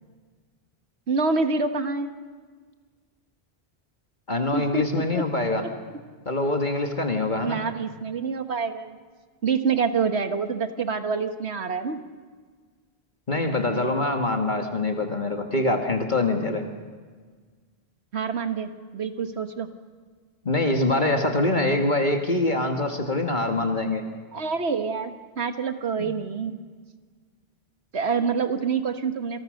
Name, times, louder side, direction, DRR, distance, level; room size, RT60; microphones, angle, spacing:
voice 1, 1.1-2.1 4.5-5.2 5.6-5.7 7.4-9.0 9.4-12.0 18.1-19.7 24.3-26.6 27.9-29.4, right 5 dB, 85° right, 8 dB, 1.8 m, -27 dB
voice 2, 4.3-5.6 6.3-7.6 13.3-16.7 20.4-24.0 26.0-26.1, left 2 dB, 45° left, 4 dB, 2.0 m, -24 dB
28.0 x 26.5 x 6.5 m, 1.5 s
omnidirectional pair, 1.1 m